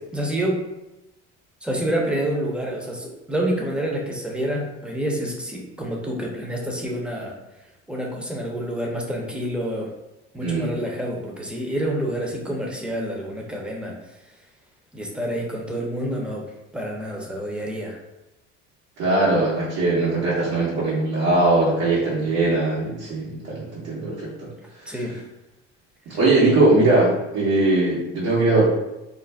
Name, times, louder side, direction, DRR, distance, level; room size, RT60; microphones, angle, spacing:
voice 1, 0.1-0.6 1.6-7.3 7.9-9.9 10.3-13.9 14.9-18.0 24.9-25.2 26.1-26.2, right 1 dB, 5° right, -1 dB, 0.6 m, -28 dB
voice 2, 19.0-24.5 24.8-24.9 26.1-28.6, right 2 dB, 75° right, -9 dB, 1.1 m, -20 dB
2.5 x 2.1 x 3.3 m, 0.97 s
supercardioid pair, 95°, 30 cm